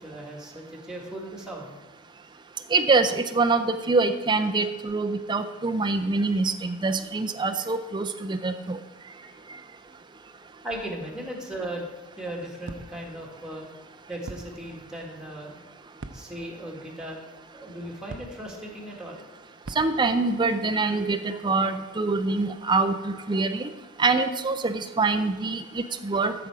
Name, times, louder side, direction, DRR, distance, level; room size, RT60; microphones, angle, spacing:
voice 1, 0.0-1.7 7.6-7.7 9.3-9.5 10.6-11.9 12.2-13.7 14.1-15.6 16.1-17.2 17.5-19.3, right 1 dB, 5° right, -1 dB, 1.9 m, -37 dB
voice 2, 2.7-8.8 19.8-23.6 24.0-26.3, right 3 dB, 25° right, 7 dB, 0.4 m, -25 dB
sound 1, 10.7-11.2 12.7-13.3 14.2-14.9 16.0-16.6 18.1-18.7 19.6-20.2, right 2 dB, 60° right, 0.7 m, -43 dB
12.5 x 6.8 x 4.9 m, 1.2 s
head